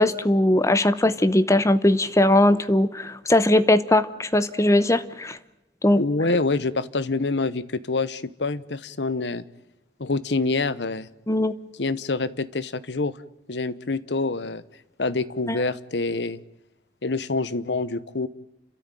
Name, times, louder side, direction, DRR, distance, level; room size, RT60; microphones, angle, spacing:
voice 1, 0.0-5.4 5.8-6.0 11.3-11.5 15.5-15.6, left 1 dB, 15° left, 13 dB, 0.9 m, -19 dB
voice 2, 6.0-9.4 10.0-11.1 11.8-13.2 13.5-14.6 15.0-16.4 17.0-18.3, left 3 dB, 80° left, 16 dB, 1.0 m, -26 dB
30.0 x 13.5 x 9.0 m, 0.95 s
head